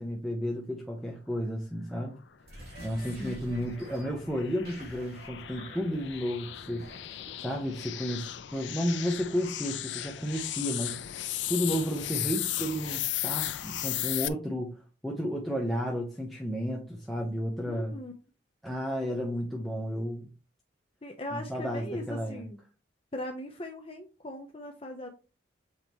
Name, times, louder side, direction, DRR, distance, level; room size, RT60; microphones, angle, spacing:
voice 1, 0.0-2.1 2.8-17.9 18.6-20.3 21.3-22.4, equal, ahead, -2 dB, 0.9 m, -32 dB
Simple Mutate (Monster), 2.4-7.5, equal, 55° right, 3.2 m, -49 dB
sound 1, 2.7-14.3, left 13 dB, 75° left, 0.5 m, -36 dB
voice 2, 3.1-3.6 13.6-13.7 17.7-18.1 21.0-22.6 23.1-25.1, left 1 dB, 30° left, 3 dB, 0.8 m, -39 dB
7.2 x 4.8 x 3.0 m, 0.32 s
head